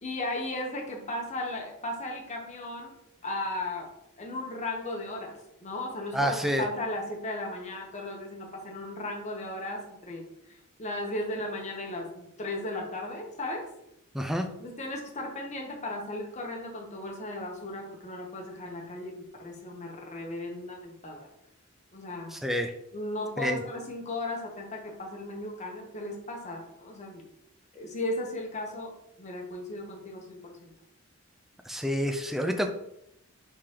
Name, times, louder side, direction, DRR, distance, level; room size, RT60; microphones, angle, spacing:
voice 1, 0.0-3.0 3.2-3.9 4.2-10.2 10.5-13.7 14.6-21.3 21.9-22.4 22.9-27.2 27.7-30.7, left 1 dB, 30° left, 0 dB, 0.9 m, -36 dB
voice 2, 6.1-6.7 14.1-14.5 22.3-22.7 23.4-23.6 31.7-32.7, equal, ahead, 5 dB, 0.3 m, -28 dB
4.8 x 3.7 x 2.9 m, 0.79 s
head